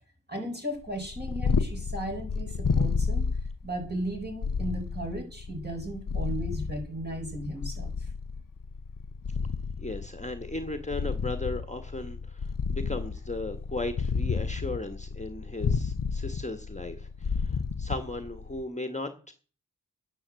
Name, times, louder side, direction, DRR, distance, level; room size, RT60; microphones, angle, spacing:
voice 1, 0.3-3.3 3.6-8.1, right 1 dB, 30° right, 1 dB, 5.7 m, -36 dB
Purr, 0.9-18.6, left 5 dB, 85° left, 0.7 m, -31 dB
voice 2, 9.8-19.3, left 2 dB, 20° left, 7 dB, 1.6 m, -36 dB
11.0 x 10.0 x 7.7 m, 0.38 s
wide cardioid pair, 40°, 32 cm